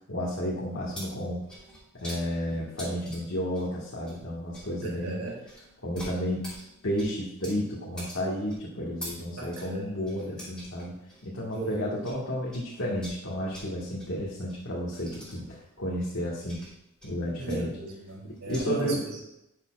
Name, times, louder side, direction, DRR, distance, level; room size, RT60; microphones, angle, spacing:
voice 1, 0.1-1.4 1.9-5.2 5.8-6.5 6.8-10.9 11.2-16.6 17.0-17.7 18.5-19.0, equal, 75° left, -6 dB, 1.7 m, -32 dB
sound 1, 0.7-12.2 12.5-18.6, equal, 5° left, 2.8 m, -46 dB
voice 2, 4.8-5.4 9.4-10.6 11.5-12.2 17.4-19.4, right 3 dB, 90° right, -2 dB, 2.8 m, -37 dB
11.0 x 6.8 x 2.4 m, 0.85 s
head